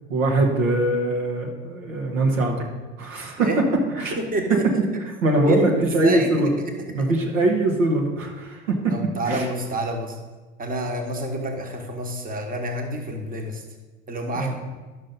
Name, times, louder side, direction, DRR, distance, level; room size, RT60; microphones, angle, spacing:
voice 1, 0.1-2.7 3.0-3.6 3.9-4.2 4.5-4.6 5.0-6.5 6.9-9.0 9.3-9.5 14.3-14.6, right 2 dB, 75° right, 0 dB, 1.4 m, -22 dB
voice 2, 4.2-4.8 5.5-7.1 8.9-10.2 10.6-13.6 14.1-14.6, right 1 dB, 20° right, 3 dB, 1.3 m, -28 dB
11.0 x 6.4 x 4.1 m, 1.3 s
figure-of-eight pair, 65°, 40 cm